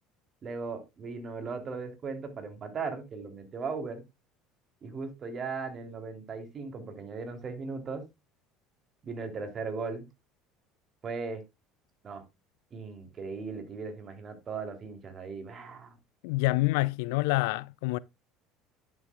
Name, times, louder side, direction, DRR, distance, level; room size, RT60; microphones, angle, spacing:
voice 1, 0.4-4.0 4.8-8.0 9.0-10.0 11.0-11.4 12.0-12.2 12.7-16.0, right 4 dB, 40° right, 3.2 m, -37 dB
voice 2, 16.2-18.0, left 21 dB, 70° left, 0.4 m, -27 dB
11.0 x 7.3 x 2.3 m
hypercardioid pair, 70°, 0 cm